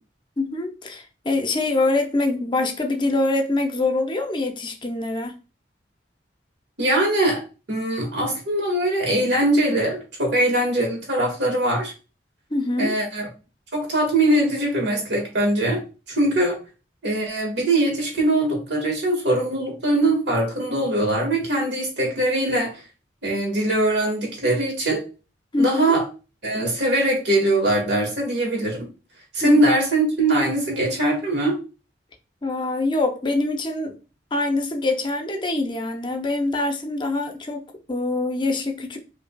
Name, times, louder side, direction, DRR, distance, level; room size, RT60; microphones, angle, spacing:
voice 1, 0.4-5.3 12.5-12.9 25.5-25.9 29.4-29.6 32.4-34.0 34.3-39.0, left 2 dB, 25° left, 0.5 m, -24 dB
voice 2, 6.8-7.4 7.7-11.9 12.8-13.3 13.7-15.8 16.1-16.6 17.0-22.8 23.2-25.0 25.6-26.0 26.4-28.9 29.3-31.5, right 1 dB, 75° right, 1.7 m, -21 dB
5.0 x 2.7 x 2.2 m
head